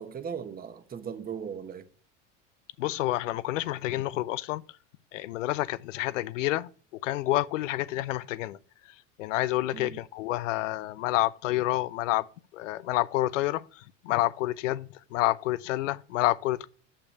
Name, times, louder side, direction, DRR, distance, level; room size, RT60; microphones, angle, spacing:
voice 1, 0.0-1.9 9.7-10.0, right 7 dB, 25° right, 1.0 m, -38 dB
voice 2, 2.8-4.6 5.1-6.7 7.0-8.6 9.2-12.3 12.5-16.7, left 16 dB, 85° left, 0.5 m, -28 dB
6.7 x 5.7 x 7.1 m
hypercardioid pair, 90°, 37 cm